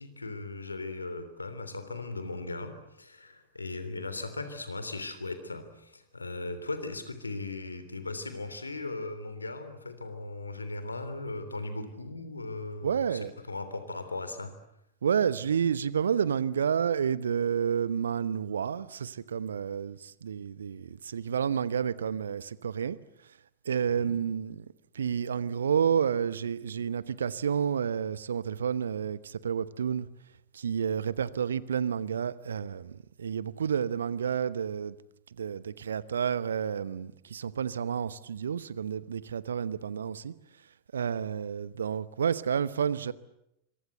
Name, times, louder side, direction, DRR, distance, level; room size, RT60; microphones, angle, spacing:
voice 1, 0.0-13.2 13.5-14.5 23.9-24.1, left 2 dB, 80° left, 3.3 m, -38 dB
voice 2, 12.8-13.3 15.0-23.0 23.6-24.6 24.9-30.1 30.5-34.9 35.4-40.3 40.9-43.1, right 7 dB, 70° right, 1.0 m, -30 dB
26.0 x 24.0 x 8.1 m
figure-of-eight pair, 90°, 0 cm